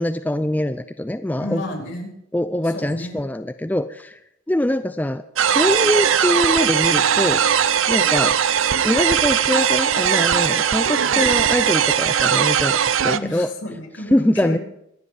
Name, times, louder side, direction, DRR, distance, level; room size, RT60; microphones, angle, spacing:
voice 1, 0.0-1.6 2.3-4.2 4.5-5.2 5.5-7.4 7.9-8.4 8.8-12.8 13.0-13.5 14.1-14.6, left 1 dB, 10° left, 10 dB, 0.4 m, -23 dB
voice 2, 1.4-2.1 2.6-3.2 11.1-11.3 13.1-14.6, left 1 dB, 65° left, 2 dB, 3.8 m, -32 dB
sound 1, 5.4-13.2, right 8 dB, 80° right, 0.6 m, -19 dB
23.5 x 8.1 x 4.8 m, 0.79 s
head